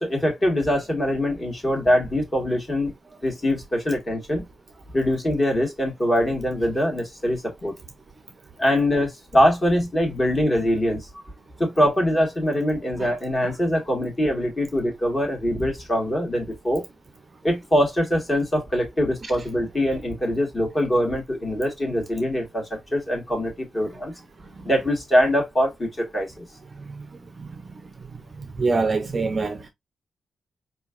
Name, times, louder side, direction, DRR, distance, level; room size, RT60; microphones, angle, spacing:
voice 1, 0.0-2.9 3.2-4.4 4.9-7.7 8.6-11.2 11.6-16.8 17.4-22.6 22.9-24.1 24.6-26.4, equal, 25° left, 1.6 m, -23 dB
voice 2, 28.1-29.7, right 3 dB, 30° right, 0.6 m, -26 dB
4.5 x 3.0 x 2.3 m
wide cardioid pair, 165°, 0 cm